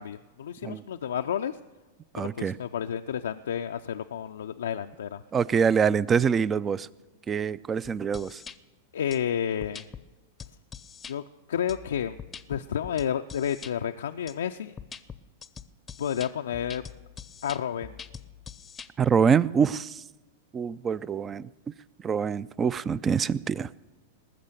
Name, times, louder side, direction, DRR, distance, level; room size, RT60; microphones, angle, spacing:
voice 1, 0.0-1.5 2.2-5.2 8.9-9.9 11.1-11.2 11.5-12.2 12.5-14.7 16.0-16.8 17.4-18.0, left 9 dB, 75° left, 6 dB, 0.4 m, -31 dB
voice 2, 2.1-2.6 5.3-6.9 7.3-8.4 19.0-20.0 20.5-21.5 22.0-23.7, right 6 dB, 25° right, 21 dB, 0.4 m, -25 dB
sound 1, 7.8-8.6 9.1-9.2 9.6-10.0 10.4-11.1 11.7-13.7 14.3-14.4 14.8-18.9, left 7 dB, 20° left, 0.6 m, -43 dB
19.5 x 6.7 x 6.6 m, 1.2 s
hypercardioid pair, 100°, 0 cm